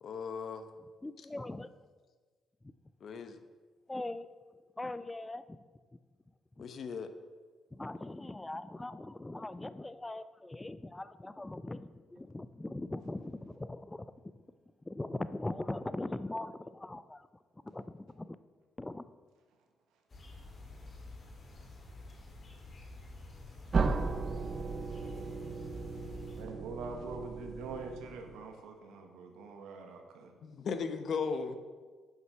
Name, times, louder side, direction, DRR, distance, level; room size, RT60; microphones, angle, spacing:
voice 1, 0.0-0.7 3.0-3.4 6.6-7.1 30.4-31.6, left 5 dB, 60° left, 9 dB, 0.8 m, -36 dB
voice 2, 1.0-1.7 3.9-4.3 4.8-5.6 7.7-14.0 14.9-17.3 17.7-18.4 18.8-19.0, left 2 dB, 15° left, 14 dB, 0.4 m, -40 dB
sound 1, 20.1-26.4, left 2 dB, 40° left, 1.9 m, -49 dB
sound 2, 23.7-28.5, right 4 dB, 40° right, 0.6 m, -35 dB
voice 3, 26.3-30.3, right 3 dB, 90° right, 4 dB, 1.2 m, -44 dB
7.8 x 5.8 x 5.7 m, 1.4 s
cardioid pair, 90°, 0 cm